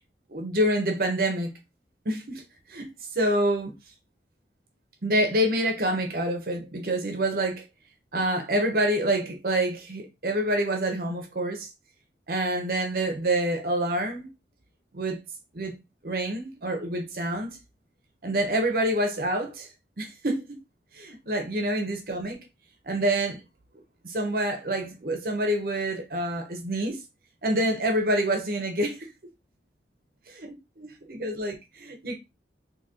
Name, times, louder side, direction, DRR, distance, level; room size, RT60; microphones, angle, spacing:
voice 1, 0.3-1.5 2.1-2.4 2.7-3.8 5.0-7.6 8.1-11.7 12.3-14.3 14.9-15.2 15.5-15.8 16.0-17.6 18.2-19.7 20.0-20.4 20.9-22.4 22.8-23.4 24.0-27.0 27.4-29.1 30.3-32.2, right 1 dB, 55° right, 0.8 m, -27 dB
3.7 x 2.9 x 2.7 m
head